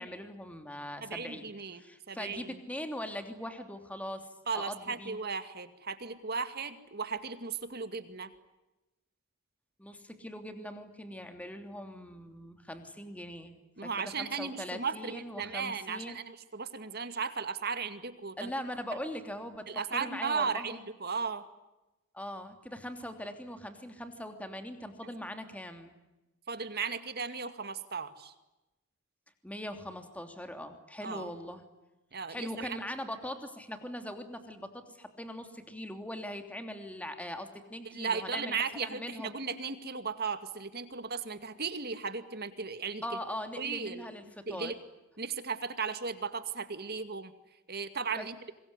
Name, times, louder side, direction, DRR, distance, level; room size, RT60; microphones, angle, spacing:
voice 1, 0.0-4.3 4.5-5.2 9.8-13.6 13.8-16.2 18.4-20.8 22.1-25.9 29.4-31.6 32.3-39.3 43.0-44.7 48.2-48.3, left 1 dB, 5° left, 7 dB, 3.0 m, -41 dB
voice 2, 1.0-2.6 4.5-8.3 13.8-18.5 19.7-21.4 26.5-28.3 31.0-31.3 32.1-32.8 37.9-43.1 43.6-44.1 44.5-44.8 45.2-47.3 47.7-48.3, right 5 dB, 50° right, 10 dB, 2.3 m, -36 dB
26.0 x 22.0 x 9.9 m, 0.98 s
head